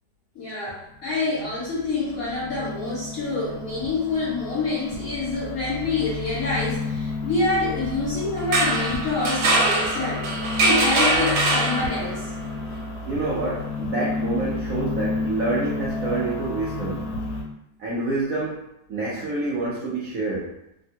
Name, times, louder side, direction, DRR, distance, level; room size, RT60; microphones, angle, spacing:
voice 1, 0.4-10.3 10.6-12.3, left 3 dB, 50° left, -9 dB, 1.6 m, -27 dB
sound 1, 0.9-17.4, left 3 dB, 85° left, 1.5 m, -31 dB
sound 2, 8.4-12.3, right 2 dB, 85° right, 1.4 m, -22 dB
voice 2, 13.1-17.1 17.8-20.5, right 2 dB, 70° right, -6 dB, 0.8 m, -27 dB
3.4 x 2.2 x 2.7 m, 0.81 s
omnidirectional pair, 2.1 m